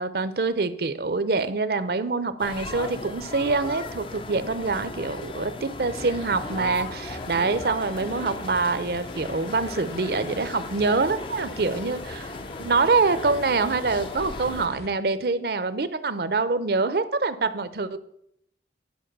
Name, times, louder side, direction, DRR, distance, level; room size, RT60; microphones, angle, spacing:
voice 1, 0.0-12.3 12.6-18.0, right 3 dB, 60° right, 13 dB, 0.6 m, -25 dB
sound 1, 2.4-14.7, left 3 dB, 30° left, 0.4 m, -37 dB
sound 2, 6.0-14.9, left 1 dB, 60° left, 1.0 m, -42 dB
10.0 x 4.6 x 6.7 m, 0.73 s
head